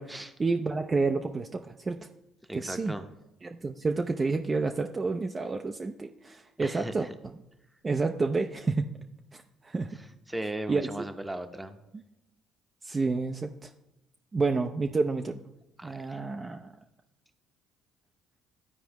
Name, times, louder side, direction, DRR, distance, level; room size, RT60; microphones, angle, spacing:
voice 1, 0.0-2.0 2.5-2.9 3.4-7.1 7.8-8.9 9.3-10.0 10.7-11.1 12.8-13.7 14.3-15.4 15.8-16.7, right 3 dB, 30° right, 4 dB, 0.5 m, -29 dB
voice 2, 2.5-3.1 6.6-7.1 10.3-11.8 15.8-16.2, right 1 dB, 10° right, 7 dB, 0.8 m, -37 dB
12.0 x 4.6 x 3.0 m, 0.94 s
supercardioid pair, 70°, 0 cm